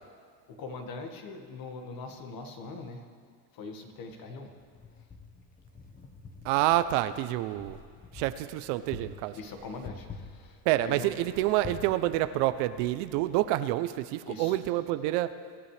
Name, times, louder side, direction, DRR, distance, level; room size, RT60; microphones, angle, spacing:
voice 1, 0.5-3.1 3.5-4.5 9.3-11.1 14.2-14.6, left 3 dB, 45° left, 4 dB, 1.9 m, -42 dB
Wind, 4.6-13.5, left 4 dB, 15° left, 1.1 m, -48 dB
voice 2, 6.4-7.8 8.1-9.3 10.7-15.3, right 15 dB, 65° right, 12 dB, 0.8 m, -28 dB
24.0 x 11.5 x 3.4 m, 2.1 s
supercardioid pair, 110°, 48 cm